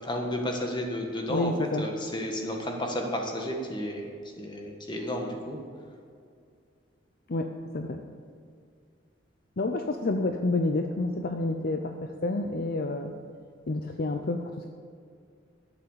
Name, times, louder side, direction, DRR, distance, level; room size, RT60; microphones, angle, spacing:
voice 1, 0.0-1.5 1.8-4.1 4.4-5.6, left 1 dB, 25° left, 2 dB, 1.7 m, -32 dB
voice 2, 1.3-1.9 7.3-8.0 9.6-13.1 13.7-14.7, left 2 dB, 50° left, 5 dB, 0.6 m, -29 dB
11.5 x 8.2 x 7.4 m, 2.3 s
head